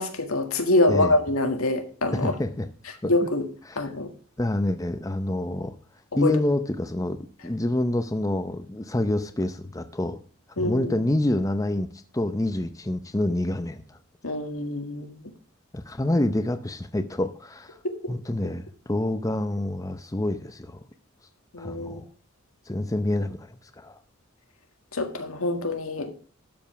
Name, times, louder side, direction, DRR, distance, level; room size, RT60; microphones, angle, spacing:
voice 1, 0.0-2.3 3.0-3.4 3.8-4.1 6.1-6.3 10.6-10.9 14.2-15.3 17.8-18.1 21.5-22.0 24.9-26.1, left 2 dB, 85° left, 6 dB, 1.7 m, -25 dB
voice 2, 2.1-2.7 3.0-3.1 3.7-3.8 4.4-5.7 6.2-7.2 7.4-10.2 10.6-14.0 15.7-17.8 18.1-20.8 21.6-22.0 22.7-24.0, left 1 dB, 15° left, 9 dB, 0.6 m, -27 dB
12.0 x 5.3 x 5.9 m, 0.40 s
head